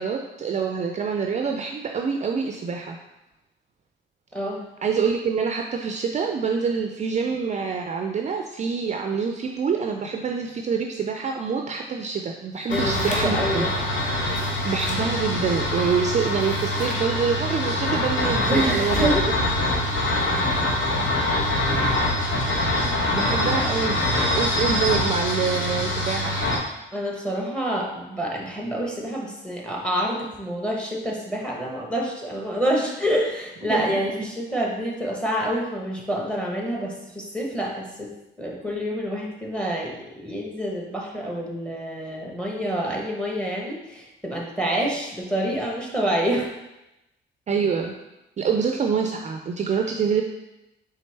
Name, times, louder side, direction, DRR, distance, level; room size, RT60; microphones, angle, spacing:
voice 1, 0.0-3.0 4.8-13.7 14.6-19.3 22.8-24.0 24.4-26.5 33.7-33.9 47.5-47.9 48.4-50.2, right 6 dB, 35° right, 3 dB, 0.4 m, -26 dB
sound 1, 12.5-13.5 14.2-15.0 16.2-17.1 18.3-19.2, left 1 dB, 40° left, 1.0 m, -39 dB
sound 2, 12.7-26.6, left 1 dB, 70° left, 1.1 m, -24 dB
voice 2, 12.7-13.7 18.5-19.2 26.9-46.5, equal, 5° left, -1 dB, 1.0 m, -27 dB
4.2 x 3.5 x 3.3 m, 0.95 s
cardioid pair, 90°, 20 cm